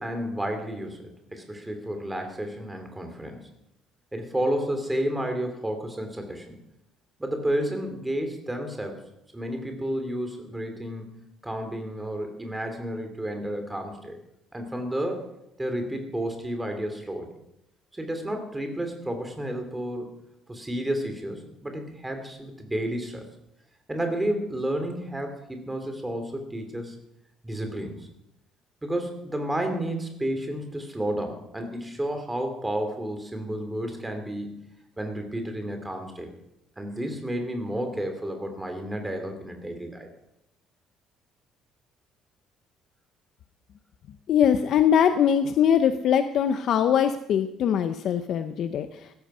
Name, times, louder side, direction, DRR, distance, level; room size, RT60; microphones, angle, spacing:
voice 1, 0.0-3.5 4.1-6.5 7.2-9.0 9.3-11.1 11.4-14.1 14.5-15.3 15.6-17.3 17.9-20.1 20.5-23.2 23.9-26.9 27.4-28.1 28.8-34.6 35.0-36.3 36.8-40.1, right 1 dB, 10° right, 5 dB, 2.8 m, -31 dB
voice 2, 44.3-49.1, left 8 dB, 55° left, 9 dB, 0.7 m, -22 dB
16.5 x 14.0 x 5.6 m, 0.83 s
cardioid pair, 155°, 0 cm